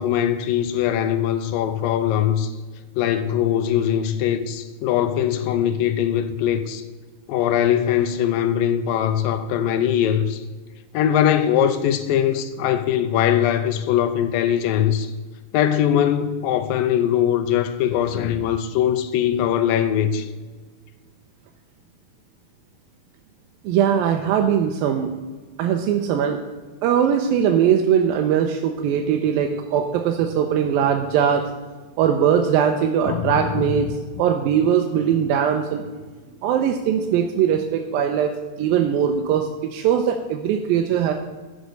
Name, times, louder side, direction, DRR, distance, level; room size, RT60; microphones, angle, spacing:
voice 1, 0.0-2.5 3.0-6.8 7.3-10.4 10.9-15.1 15.5-20.3 33.1-33.7, left 10 dB, 80° left, 2.3 m, -21 dB
voice 2, 23.6-25.1 25.6-26.4 26.8-31.5 32.0-35.8 36.4-38.3 38.6-41.1, right 8 dB, 85° right, 2.5 m, -20 dB
11.5 x 6.4 x 6.6 m
omnidirectional pair, 4.2 m